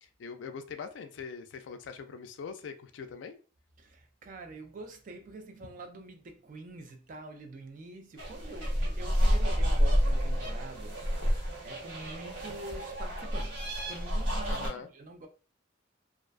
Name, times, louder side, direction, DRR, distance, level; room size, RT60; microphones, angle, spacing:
voice 1, 0.0-3.4 14.5-14.9, left 6 dB, 70° left, 0.3 m, -42 dB
voice 2, 3.8-15.3, right 2 dB, 45° right, 0.4 m, -46 dB
sound 1, 8.2-14.7, equal, 80° right, 0.8 m, -29 dB
2.4 x 2.2 x 2.3 m
head